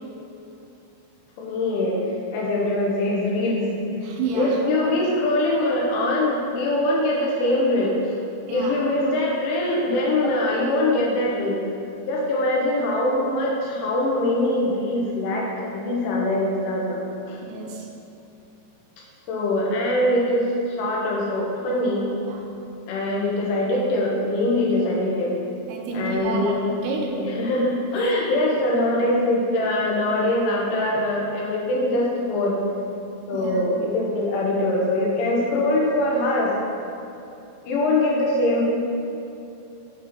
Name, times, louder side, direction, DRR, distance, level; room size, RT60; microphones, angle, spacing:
voice 1, 1.4-2.0 2.3-3.7 4.3-8.2 8.5-11.6 12.1-17.4 19.3-20.5 20.8-22.1 22.9-25.3 25.9-26.7 27.1-32.6 33.3-36.5 37.7-38.6, left 1 dB, 80° left, -3 dB, 3.4 m, -23 dB
voice 2, 4.0-4.6 8.5-8.8 17.4-17.8 22.3-22.4 25.7-26.6 26.8-27.1 33.3-33.6, right 3 dB, 80° right, 0 dB, 2.9 m, -29 dB
7.9 x 4.3 x 4.3 m, 2.8 s
omnidirectional pair, 5.4 m